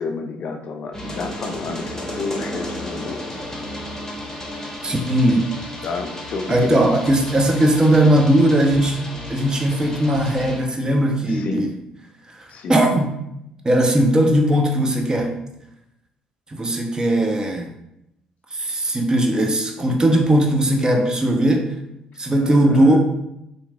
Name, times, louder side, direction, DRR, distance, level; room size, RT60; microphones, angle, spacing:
voice 1, 0.0-3.2 5.8-6.8 11.3-11.7 12.5-12.8 22.4-23.0, left 4 dB, 50° left, 5 dB, 0.4 m, -30 dB
sound 1, 0.9-10.6, left 1 dB, 15° left, 0.8 m, -33 dB
voice 2, 4.8-5.5 6.5-9.0 9.3-11.7 12.4-13.2 13.6-15.4 16.5-17.7 18.5-21.8 22.2-23.0, right 1 dB, 25° right, 3 dB, 0.5 m, -18 dB
2.9 x 2.6 x 2.3 m, 0.84 s
hypercardioid pair, 55°, 3 cm